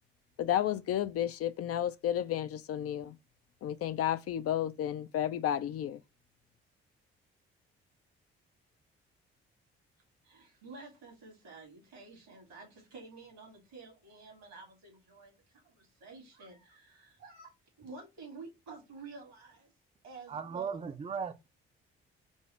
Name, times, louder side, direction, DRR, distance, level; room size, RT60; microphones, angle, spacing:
voice 1, 0.4-3.2 3.6-6.0, left 11 dB, 50° left, 0.5 m, -32 dB
voice 2, 10.2-15.4 15.6-17.5 17.8-19.7 20.0-20.8, right 4 dB, 85° right, 2.6 m, -50 dB
voice 3, 20.3-21.5, right 6 dB, 20° right, 0.6 m, -37 dB
5.3 x 2.1 x 4.8 m
hypercardioid pair, 50°, 30 cm